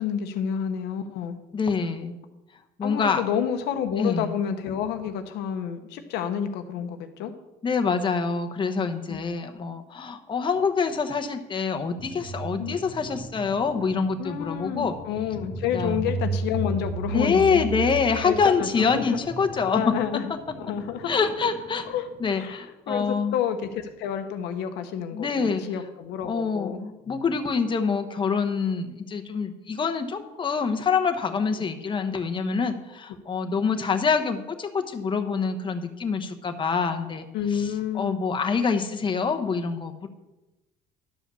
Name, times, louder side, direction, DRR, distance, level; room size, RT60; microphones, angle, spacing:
voice 1, 0.0-1.4 2.8-7.3 9.1-9.2 12.6-12.8 14.2-17.6 18.2-19.2 19.7-20.3 20.6-21.1 21.8-22.1 22.3-26.8 31.5-31.6 36.4-36.5 37.3-38.2, left 8 dB, 90° left, 7 dB, 1.0 m, -29 dB
voice 2, 1.5-2.2 2.8-3.2 4.0-4.3 7.6-14.9 15.7-16.0 17.1-19.9 21.1-21.8 22.2-23.3 25.1-25.6 26.2-37.3 37.5-37.6 37.9-40.1, left 5 dB, 30° left, 7 dB, 1.0 m, -25 dB
sound 1, 12.0-22.5, right 3 dB, 65° right, 3.1 m, -35 dB
11.5 x 5.1 x 6.9 m, 1.0 s
cardioid pair, 110°, 17 cm